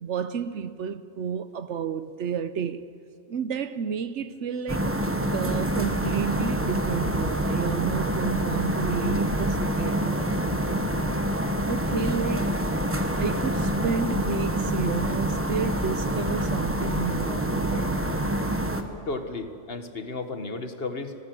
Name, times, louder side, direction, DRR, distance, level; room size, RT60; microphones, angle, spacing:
voice 1, 0.0-2.9 3.3-5.1 5.3-10.3 11.7-12.7 13.2-18.0, right 6 dB, 70° right, 1.1 m, -31 dB
sound 1, 4.7-18.8, right 1 dB, 10° right, 1.3 m, -26 dB
voice 2, 19.1-21.2, left 3 dB, 50° left, 1.6 m, -33 dB
29.5 x 19.5 x 7.7 m
omnidirectional pair, 1.3 m